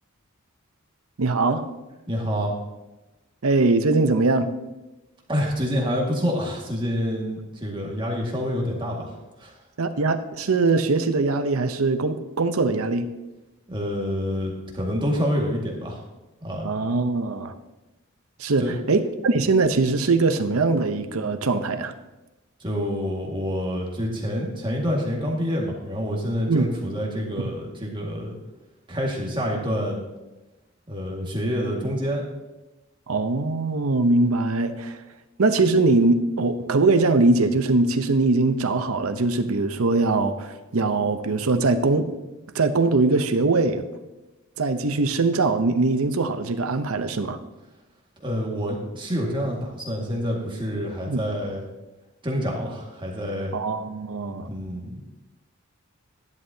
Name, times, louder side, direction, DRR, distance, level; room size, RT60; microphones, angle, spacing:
voice 1, 1.2-1.7 3.4-4.5 9.8-13.1 16.6-17.5 18.4-21.9 26.5-26.6 33.1-35.0 35.4-42.1 42.5-43.9 44.6-47.4 51.1-51.2 53.5-54.5, right 3 dB, 85° right, 9 dB, 0.8 m, -22 dB
voice 2, 2.1-2.5 5.3-9.5 13.7-16.0 16.4-16.7 18.6-18.7 22.6-28.4 28.9-30.0 30.9-32.2 48.2-51.6 52.2-53.6 54.5-55.0, equal, 25° right, -1 dB, 1.9 m, -27 dB
11.5 x 11.0 x 2.8 m, 1.0 s
head